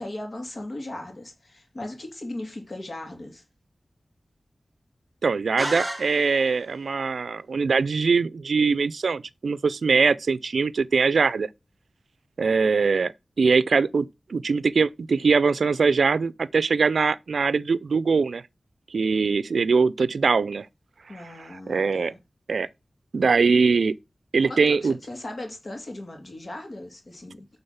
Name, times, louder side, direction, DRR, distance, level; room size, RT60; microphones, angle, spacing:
voice 1, 0.0-3.4 21.1-22.2 24.4-27.5, left 1 dB, 55° left, 2.6 m, -37 dB
voice 2, 5.2-11.5 12.4-18.4 18.9-20.7 21.4-22.1 22.5-22.7 23.1-24.0 24.3-25.0, right 4 dB, 90° right, 0.4 m, -22 dB
sound 1, 5.6-6.7, right 1 dB, 25° right, 2.8 m, -32 dB
8.7 x 4.0 x 5.6 m
wide cardioid pair, 55°, 0 cm